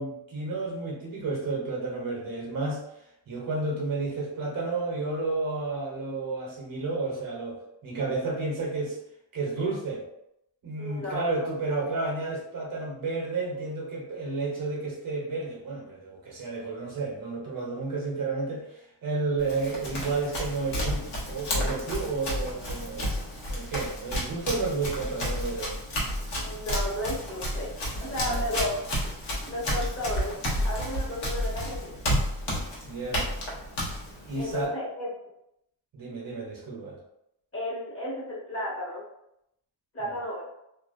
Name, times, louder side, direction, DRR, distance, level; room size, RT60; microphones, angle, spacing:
voice 1, 0.0-2.8 3.3-9.0 9.3-10.0 10.6-25.7 28.1-28.5 32.8-33.3 34.3-34.8 35.9-37.0, right 3 dB, 45° right, -1 dB, 0.8 m, -31 dB
voice 2, 10.8-11.6 26.4-27.7 28.0-28.8 29.5-30.3 30.6-32.0 34.4-35.1 37.5-39.0 39.9-40.4, left 1 dB, 30° left, -6 dB, 1.2 m, -33 dB
Run, 19.4-34.7, equal, 65° left, 1.1 m, -31 dB
2.5 x 2.1 x 2.4 m, 0.81 s
cardioid pair, 95°, 46 cm